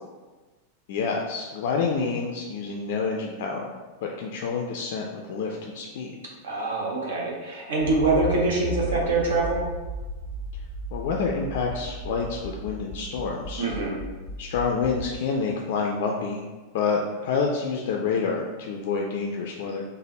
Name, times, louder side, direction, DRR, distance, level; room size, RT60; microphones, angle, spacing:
voice 1, 0.9-3.6 4.0-6.2 10.9-13.7 14.4-16.4 16.7-19.8, left 5 dB, 50° left, 0 dB, 0.3 m, -28 dB
voice 2, 6.4-9.6 13.6-14.0, right 3 dB, 60° right, -2 dB, 0.7 m, -24 dB
Accelerating revving vroom, 7.8-15.1, equal, 5° left, 0.7 m, -35 dB
3.3 x 2.1 x 3.9 m, 1.3 s
figure-of-eight pair, 90°, 0 cm